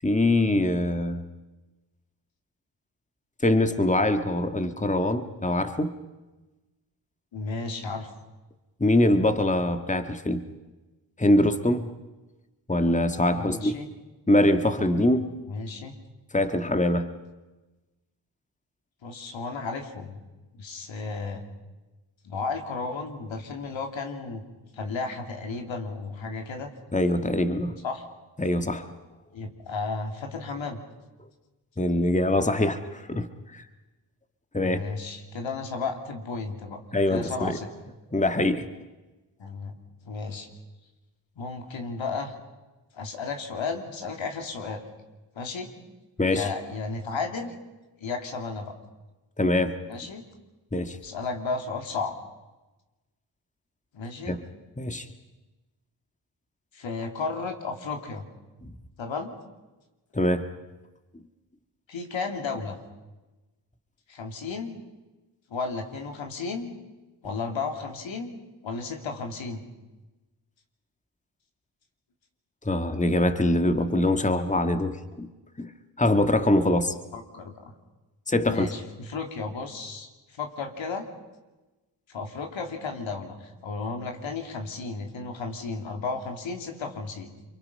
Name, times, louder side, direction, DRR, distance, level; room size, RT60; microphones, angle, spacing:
voice 1, 0.0-1.3 3.4-6.0 8.8-10.5 11.2-11.9 12.7-13.7 14.3-15.4 16.3-17.1 26.9-27.8 28.4-28.9 31.8-33.6 34.5-34.8 36.9-37.6 38.1-38.7 46.2-46.5 49.4-49.8 50.7-51.0 54.3-54.4 54.8-55.1 58.6-58.7 60.1-60.5 72.6-75.3 75.6-75.7 76.0-77.0 78.3-78.7, left 1 dB, 15° left, 8 dB, 1.8 m, -23 dB
voice 2, 7.3-8.1 13.3-13.9 15.5-15.9 19.0-20.2 20.5-21.4 22.2-24.4 24.7-26.7 27.8-28.1 29.3-30.8 34.6-36.8 37.1-37.7 39.4-39.7 40.0-40.5 41.4-42.3 42.9-44.8 45.3-45.7 46.3-47.5 48.0-48.7 49.9-50.2 51.0-52.1 53.9-54.4 56.7-58.3 59.0-59.4 61.9-62.8 64.1-64.8 65.5-66.7 67.2-69.6 77.1-77.7 78.5-81.1 82.1-87.3, left 4 dB, 75° left, 4 dB, 3.0 m, -33 dB
29.5 x 24.0 x 5.5 m, 1.1 s
supercardioid pair, 45°, 46 cm